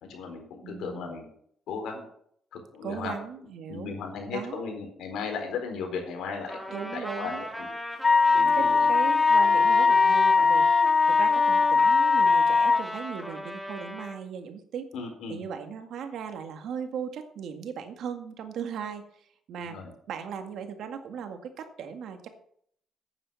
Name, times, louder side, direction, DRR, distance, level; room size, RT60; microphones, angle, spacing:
voice 1, 0.0-1.3 1.7-2.1 2.5-3.1 3.7-7.7 8.3-8.9 14.9-15.4 19.7-19.9, left 5 dB, 80° left, 3 dB, 4.3 m, -36 dB
voice 2, 0.6-1.1 2.8-3.9 4.3-4.7 6.7-7.4 8.5-10.7 11.1-14.9 15.3-19.8 20.1-22.3, right 7 dB, 75° right, 6 dB, 1.9 m, -37 dB
Trumpet, 6.5-14.2, equal, ahead, 2.3 m, -36 dB
Wind instrument woodwind instrument, 8.0-12.9, left 4 dB, 35° left, 0.5 m, -20 dB
9.6 x 9.0 x 7.1 m, 0.66 s
cardioid pair, 90°, 0 cm